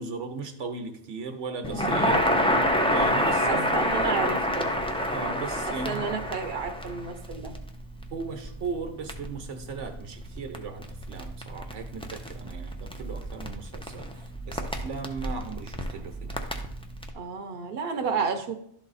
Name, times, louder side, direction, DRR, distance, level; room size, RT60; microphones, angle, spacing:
voice 1, 0.0-2.2 2.9-3.8 5.1-6.1 8.1-14.1 14.5-16.4, right 4 dB, 75° right, 6 dB, 1.2 m, -37 dB
Crackle, 1.6-17.1, equal, 5° left, 0.4 m, -29 dB
voice 2, 3.4-4.7 5.8-7.5 17.1-18.6, right 5 dB, 55° right, 5 dB, 0.9 m, -31 dB
11.5 x 4.1 x 4.0 m, 0.68 s
omnidirectional pair, 1.3 m